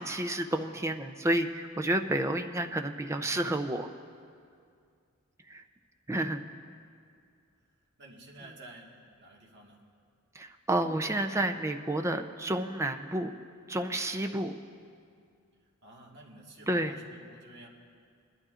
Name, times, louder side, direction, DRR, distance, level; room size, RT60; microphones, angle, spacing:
voice 1, 0.0-3.9 5.5-5.6 6.1-6.4 10.3-13.3 13.7-14.5 16.7-16.9, right 1 dB, 15° right, 5 dB, 0.5 m, -30 dB
voice 2, 8.0-9.8 15.8-17.7, right 1 dB, 55° right, -1 dB, 1.6 m, -51 dB
22.0 x 11.5 x 2.5 m, 2.2 s
head